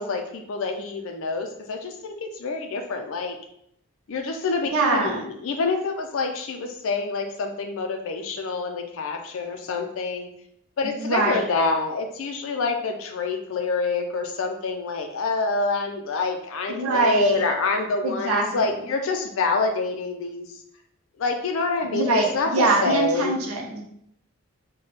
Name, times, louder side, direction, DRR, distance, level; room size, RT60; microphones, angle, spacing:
voice 1, 0.0-3.4 4.1-10.3 10.8-20.6 21.2-23.4, left 3 dB, 65° left, 4 dB, 0.4 m, -27 dB
voice 2, 4.7-5.2 10.8-11.4 16.7-17.4 18.0-18.7 21.9-23.8, right 2 dB, 75° right, 0 dB, 0.5 m, -23 dB
3.9 x 2.2 x 3.3 m, 0.72 s
head